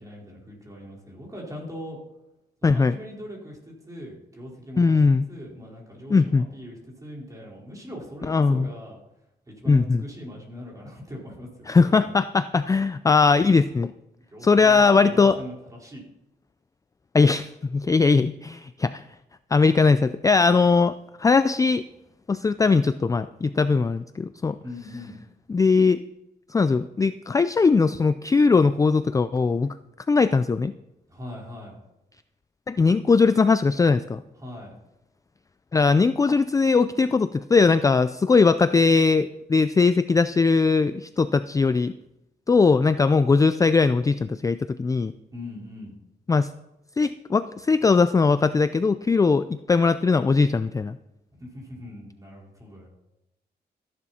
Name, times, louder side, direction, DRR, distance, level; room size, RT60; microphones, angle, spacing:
voice 1, 0.0-2.0 2.6-5.0 5.3-9.0 9.5-12.1 14.3-16.0 24.6-25.2 31.1-31.8 34.4-34.7 45.0-46.0 51.4-52.9, left 1 dB, 20° right, -2 dB, 4.6 m, -40 dB
voice 2, 2.6-3.0 4.8-5.3 6.1-6.5 8.3-8.7 9.7-10.0 11.7-13.9 14.4-15.4 17.1-19.0 19.5-21.8 22.3-24.6 25.5-26.0 26.5-29.7 30.1-30.7 32.7-34.2 35.7-41.9 42.5-45.1 46.3-46.5 47.0-51.0, left 4 dB, 20° left, 13 dB, 0.3 m, -20 dB
14.0 x 11.0 x 4.3 m, 0.88 s
wide cardioid pair, 135°, 18 cm